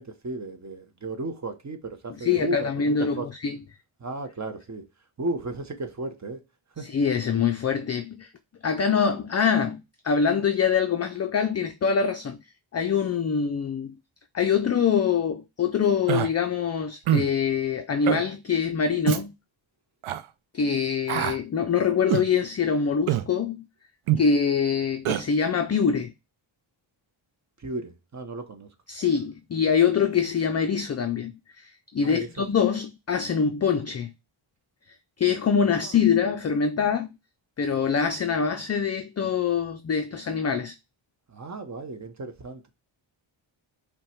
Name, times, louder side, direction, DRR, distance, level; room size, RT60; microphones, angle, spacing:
voice 1, 0.0-3.3 4.0-4.8 5.2-6.4 6.8-6.9 27.6-28.7 32.0-32.3 35.7-35.8 41.3-42.7, right 2 dB, 35° right, 0.9 m, -34 dB
voice 2, 2.1-3.6 6.8-8.3 8.6-12.4 12.7-14.0 14.3-19.3 20.5-23.7 24.2-26.1 28.9-34.1 35.2-37.1 37.6-40.7, left 6 dB, 35° left, 0.4 m, -24 dB
Human voice, 16.1-16.3 17.1-17.3 18.1-18.2 19.1-19.2 20.0-20.2 21.1-21.4 22.1-22.3 23.1-23.3 24.1-24.3 25.1-25.2, right 12 dB, 75° right, 0.5 m, -24 dB
5.4 x 2.3 x 4.3 m
wide cardioid pair, 105°, 49 cm